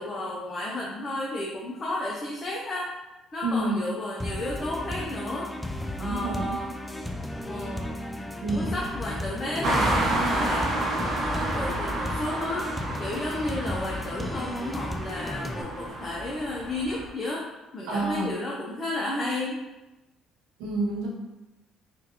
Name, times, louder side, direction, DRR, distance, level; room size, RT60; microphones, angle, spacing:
voice 1, 0.0-2.8 3.3-5.5 6.0-6.7 7.5-7.9 8.5-12.6 13.0-17.4 17.7-19.6, left 1 dB, 35° left, -4 dB, 0.7 m, -32 dB
voice 2, 3.4-3.9 6.0-6.6 8.4-8.7 17.9-18.3 20.6-21.1, right 2 dB, 90° right, -3 dB, 0.8 m, -28 dB
sound 1, 4.2-15.6, left 1 dB, 5° left, 0.4 m, -34 dB
sound 2, 9.6-17.1, right 1 dB, 45° right, 0.9 m, -30 dB
3.6 x 2.5 x 2.9 m, 1.0 s
supercardioid pair, 75°, 0 cm